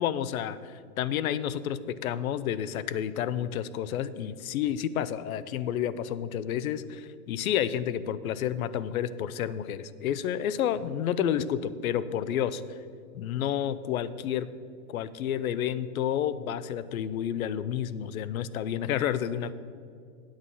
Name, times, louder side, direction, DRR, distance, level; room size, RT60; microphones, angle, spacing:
voice 1, 0.0-12.6 13.1-14.5 14.9-19.5, left 10 dB, 70° left, 16 dB, 0.6 m, -30 dB
8.8 x 7.5 x 5.5 m, 2.3 s
supercardioid pair, 175°, 44 cm